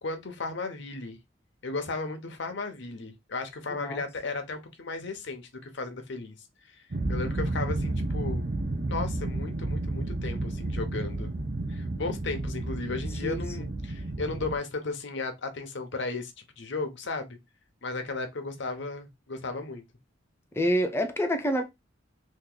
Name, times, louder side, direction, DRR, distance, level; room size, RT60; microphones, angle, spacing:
voice 1, 0.0-1.2 1.6-6.4 6.7-8.5 8.9-11.3 11.7-17.4 17.8-19.8, left 3 dB, 65° left, 0.8 m, -35 dB
sound 1, 6.9-14.6, right 2 dB, 50° right, 0.6 m, -31 dB
voice 2, 13.2-13.7 20.5-21.7, equal, 15° left, 0.6 m, -27 dB
2.9 x 2.6 x 3.7 m
head